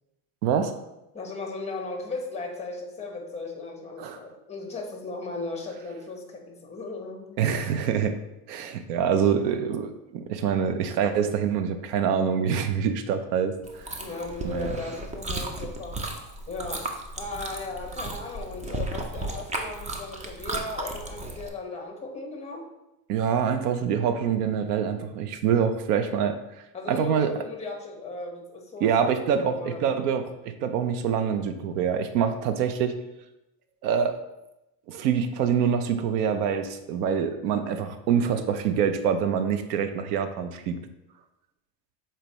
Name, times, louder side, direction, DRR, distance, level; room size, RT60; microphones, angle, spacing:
voice 1, 0.4-0.7 4.0-4.2 7.4-8.2 8.5-14.0 14.4-14.7 23.1-26.3 26.9-27.3 28.8-32.9 33.8-34.2 34.9-40.8, right 7 dB, 80° right, 8 dB, 0.8 m, -25 dB
voice 2, 1.1-7.3 14.0-16.0 16.5-22.7 26.7-28.9 29.4-30.0, left 3 dB, 15° left, 1 dB, 1.2 m, -36 dB
Chewing mastication, 13.6-21.5, right 2 dB, 15° right, 0.6 m, -34 dB
6.9 x 4.4 x 3.0 m, 0.91 s
supercardioid pair, 130°, 48 cm